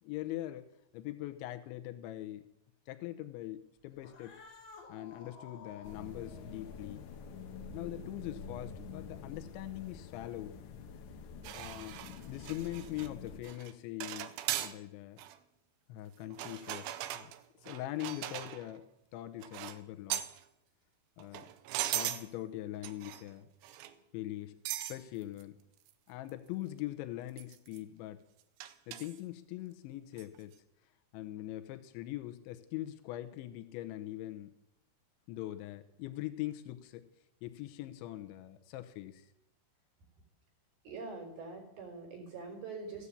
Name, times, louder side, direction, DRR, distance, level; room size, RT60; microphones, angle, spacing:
voice 1, 0.0-0.7 0.9-2.4 2.9-4.3 4.9-7.1 7.7-10.6 11.5-12.0 12.3-15.2 15.9-17.3 17.6-18.8 19.1-20.3 21.2-21.5 21.9-23.5 24.1-24.6 24.9-25.6 26.1-28.2 28.9-30.5 31.1-34.5 35.3-37.1 37.4-39.3, left 15 dB, 85° left, 8 dB, 3.2 m, -42 dB
Cat, 3.9-9.6, left 4 dB, 40° left, 2.0 m, -55 dB
sound 1, 5.8-13.4, left 5 dB, 65° left, 2.1 m, -47 dB
sound 2, 11.4-13.1 13.4-13.7 14.0-14.8 15.2-15.4 16.3-18.7 19.4-19.8 20.1-20.4 21.2-22.3 22.8-23.3 23.6-24.0 24.7-25.0 25.4-25.5 25.9-26.0 26.3-26.4 27.4-27.8 28.6-29.2 30.2-30.4, right 13 dB, 85° right, 3.2 m, -39 dB
voice 2, 40.8-43.1, right 4 dB, 60° right, 0 dB, 5.4 m, -44 dB
15.0 x 9.9 x 8.4 m, 0.82 s
omnidirectional pair, 5.3 m